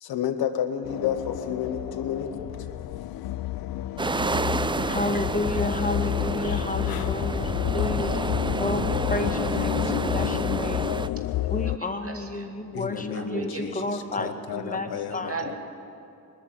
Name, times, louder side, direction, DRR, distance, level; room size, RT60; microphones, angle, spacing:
voice 1, 0.0-2.3 6.4-6.6 9.9-10.3 12.7-15.6, left 8 dB, 85° left, 9 dB, 1.0 m, -31 dB
sound 1, 0.8-11.8, left 14 dB, 70° left, 0.5 m, -30 dB
sound 2, 4.0-11.1, right 3 dB, 15° right, 0.4 m, -30 dB
voice 2, 4.7-8.2 8.5-11.0 11.5-15.3, left 2 dB, 20° left, 5 dB, 1.5 m, -31 dB
voice 3, 10.9-11.5 11.8-12.8 13.1-13.9 15.3-15.6, right 4 dB, 40° right, 3 dB, 2.4 m, -38 dB
20.0 x 6.9 x 9.9 m, 2.8 s
supercardioid pair, 40°, 36 cm